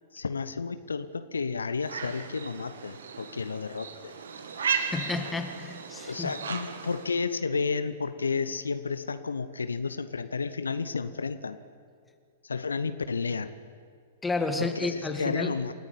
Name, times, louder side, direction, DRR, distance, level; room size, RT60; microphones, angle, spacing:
voice 1, 0.1-4.1 6.1-11.6 12.4-13.5 14.6-15.7, left 4 dB, 70° left, 12 dB, 0.9 m, -32 dB
sound 1, 1.8-7.1, right 6 dB, 60° right, 2.1 m, -35 dB
voice 2, 4.8-6.3 14.2-15.5, left 3 dB, 10° left, 7 dB, 1.8 m, -31 dB
28.0 x 14.5 x 8.7 m, 2.1 s
figure-of-eight pair, 105°, 0 cm